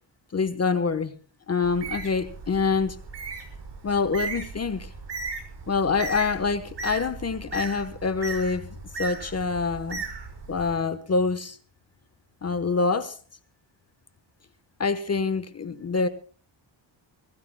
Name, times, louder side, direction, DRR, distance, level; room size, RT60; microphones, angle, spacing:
voice 1, 0.3-1.2 1.5-3.0 3.8-4.9 5.7-8.7 9.0-10.0 10.5-11.6 12.4-13.2 14.8-16.1, left 4 dB, 30° left, 1.2 m, -26 dB
Bird, 1.6-10.7, right 4 dB, 60° right, 5.8 m, -37 dB
25.0 x 20.0 x 2.3 m
wide cardioid pair, 130°, 46 cm